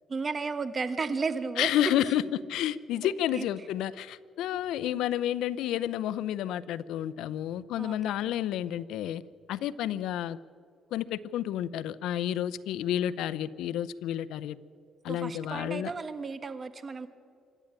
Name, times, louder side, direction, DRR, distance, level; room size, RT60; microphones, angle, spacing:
voice 1, 0.1-1.7 3.0-3.5 7.8-8.2 15.1-17.1, right 4 dB, 35° right, 11 dB, 1.5 m, -34 dB
voice 2, 1.6-2.2 2.5-9.2 9.5-10.4 10.9-14.6 15.0-15.9, left 11 dB, 90° left, 16 dB, 0.6 m, -30 dB
26.0 x 12.0 x 8.9 m, 2.3 s
cardioid pair, 90°, 0 cm